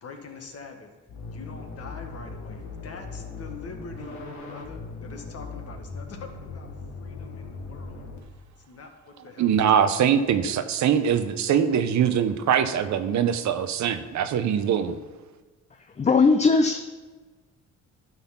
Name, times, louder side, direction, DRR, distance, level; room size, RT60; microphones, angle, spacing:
voice 1, 0.0-0.9 1.3-4.2 4.5-6.7 7.0-8.0 8.6-9.8, left 4 dB, 55° left, 3 dB, 1.6 m, -43 dB
sound 1, 1.1-8.2, left 3 dB, 70° left, 1.6 m, -39 dB
voice 2, 9.4-15.0, right 8 dB, 70° right, 10 dB, 0.8 m, -22 dB
voice 3, 15.7-16.9, left 4 dB, 25° left, 7 dB, 0.5 m, -20 dB
12.0 x 4.1 x 5.8 m, 1.3 s
cardioid pair, 90°, 30 cm